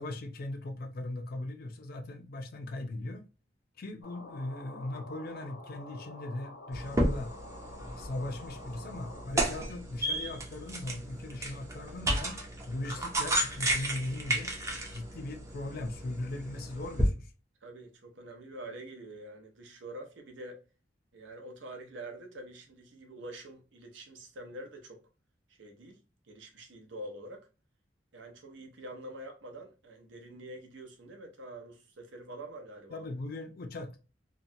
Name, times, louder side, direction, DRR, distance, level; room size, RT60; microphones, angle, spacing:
voice 1, 0.0-3.2 3.8-7.3 8.0-12.4 12.7-14.5 14.9-17.3 32.9-34.0, left 2 dB, 55° left, 0.4 m, -39 dB
sound 1, 4.0-9.3, left 2 dB, 90° left, 0.9 m, -48 dB
sound 2, 6.7-17.1, right 1 dB, 15° right, 0.6 m, -33 dB
voice 2, 17.6-20.6 21.1-25.0 25.5-26.0 26.3-27.5 28.1-33.1, right 1 dB, 80° right, 0.7 m, -46 dB
2.8 x 2.2 x 2.6 m
head